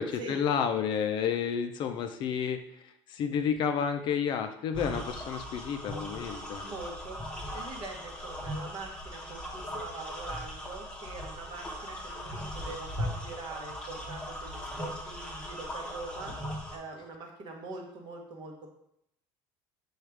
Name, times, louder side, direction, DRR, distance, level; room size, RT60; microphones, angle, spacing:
voice 1, 0.0-6.6, left 7 dB, 45° left, 7 dB, 0.4 m, -31 dB
sound 1, 4.7-16.8, equal, 10° left, 0.8 m, -39 dB
voice 2, 6.6-7.2 7.5-16.4 16.7-18.7, right 3 dB, 45° right, 2 dB, 0.9 m, -43 dB
4.8 x 2.4 x 4.5 m, 0.76 s
cardioid pair, 140°, 11 cm